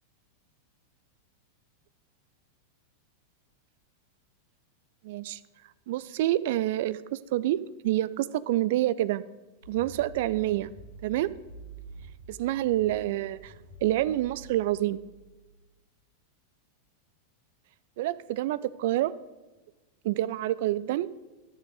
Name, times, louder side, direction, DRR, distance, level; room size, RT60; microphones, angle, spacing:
voice 1, 5.0-5.4 5.9-9.2 9.7-10.7 11.0-11.3 12.3-13.5 13.8-15.0 18.0-19.1 20.0-21.1, right 14 dB, 50° right, 17 dB, 0.3 m, -27 dB
sound 1, 9.6-15.5, right 3 dB, 80° left, 2.3 m, -48 dB
11.5 x 6.7 x 4.8 m, 1.2 s
figure-of-eight pair, 90°, 0 cm